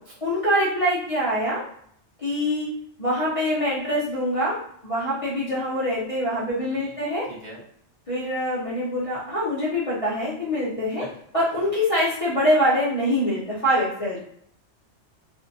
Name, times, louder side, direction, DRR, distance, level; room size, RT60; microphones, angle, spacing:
voice 1, 0.2-1.6 2.2-2.7 3.0-7.3 8.1-11.1 11.3-14.2, equal, 40° left, -8 dB, 0.5 m, -24 dB
voice 2, 6.6-7.6 10.9-11.1 11.5-11.7, right 1 dB, 60° right, -6 dB, 1.2 m, -45 dB
2.5 x 2.1 x 2.6 m, 0.66 s
omnidirectional pair, 1.2 m